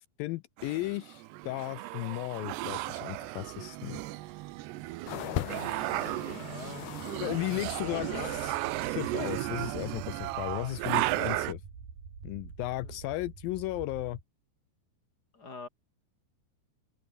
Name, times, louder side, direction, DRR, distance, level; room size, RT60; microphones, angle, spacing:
voice 1, 0.2-4.0 7.2-8.5 8.8-11.6 12.2-14.2, left 19 dB, 90° left, 2.0 m, -35 dB
sound 1, 0.6-11.5, right 18 dB, 90° right, 3.0 m, -35 dB
sound 2, 5.1-8.5 8.8-9.7 10.4-10.5, left 12 dB, 70° left, 3.3 m, -40 dB
voice 2, 5.9-6.9 7.6-8.3 12.8-13.0 15.3-15.7, left 4 dB, 25° left, 2.7 m, -44 dB
sound 3, 7.2-14.2, right 6 dB, 55° right, 5.7 m, -47 dB
omnidirectional pair, 4.7 m